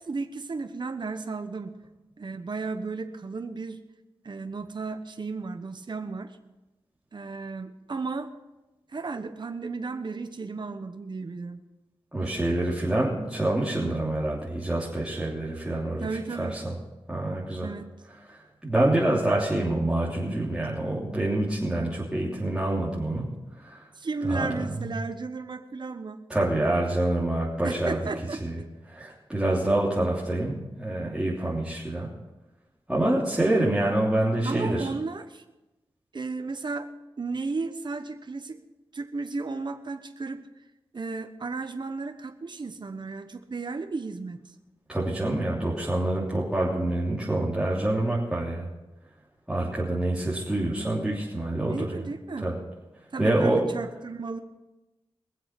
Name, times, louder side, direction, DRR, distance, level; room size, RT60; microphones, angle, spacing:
voice 1, 0.0-1.8 2.2-3.8 4.2-6.4 7.1-8.3 8.9-11.6 16.0-16.6 17.6-18.0 23.9-26.2 27.6-28.4 34.4-35.4 36.1-36.9 37.2-38.6 38.9-40.5 40.9-44.4 51.6-52.5 53.1-54.4, right 4 dB, 50° right, 8 dB, 1.1 m, -34 dB
voice 2, 12.1-16.1 16.4-16.7 17.1-17.7 18.6-23.3 23.6-23.8 24.2-24.8 26.3-28.0 28.4-28.6 28.9-32.1 32.9-34.9 44.9-48.7 49.5-52.0 52.4-52.5 53.2-53.7, right 1 dB, 10° right, -7 dB, 3.2 m, -26 dB
21.5 x 7.7 x 6.0 m, 1.0 s
cardioid pair, 65°, 10 cm